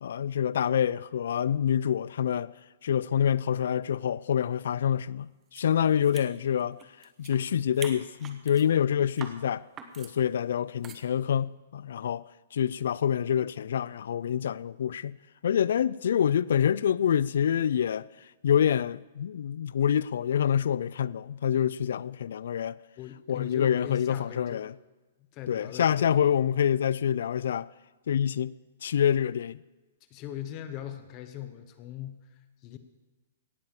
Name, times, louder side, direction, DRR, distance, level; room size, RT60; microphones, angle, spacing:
voice 1, 0.0-2.5 2.8-6.8 7.2-9.6 10.0-12.3 12.5-15.2 15.4-18.1 18.4-22.8 23.3-24.7 25.5-27.7 28.1-28.5 28.8-29.6, left 9 dB, 70° left, 0.3 m, -26 dB
sound 1, 5.5-5.6 6.0-7.4 7.7-8.6 9.1-9.4 9.8-10.1 10.8-11.0, right 7 dB, 15° right, 1.0 m, -44 dB
voice 2, 23.0-24.7 25.3-26.3 30.1-32.8, left 11 dB, 25° left, 0.9 m, -40 dB
17.0 x 6.8 x 7.3 m
hypercardioid pair, 165°, 0 cm